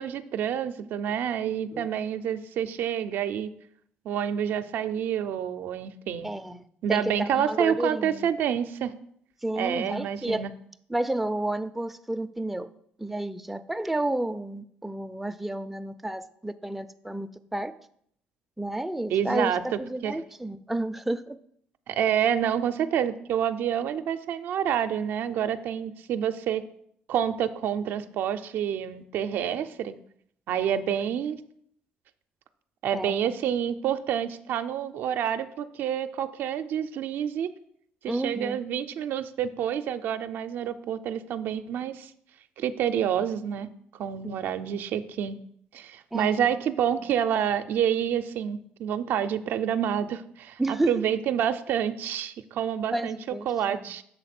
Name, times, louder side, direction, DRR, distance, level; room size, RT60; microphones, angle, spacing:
voice 1, 0.0-3.5 4.0-6.3 6.8-8.9 9.5-10.5 19.1-20.1 21.9-26.6 27.1-29.9 30.5-31.4 32.8-37.5 38.0-42.1 42.6-43.7 44.0-45.4 45.7-53.2 53.5-54.0, right 9 dB, 70° right, 9 dB, 0.4 m, -28 dB
voice 2, 6.2-8.3 9.4-10.5 10.9-12.7 13.0-17.7 18.6-21.4 32.9-33.1 38.1-38.6 44.2-44.4 46.1-46.5 50.6-51.1 52.9-54.0, right 1 dB, 5° right, 8 dB, 0.4 m, -31 dB
6.9 x 3.5 x 5.9 m, 0.68 s
cardioid pair, 85°, 4 cm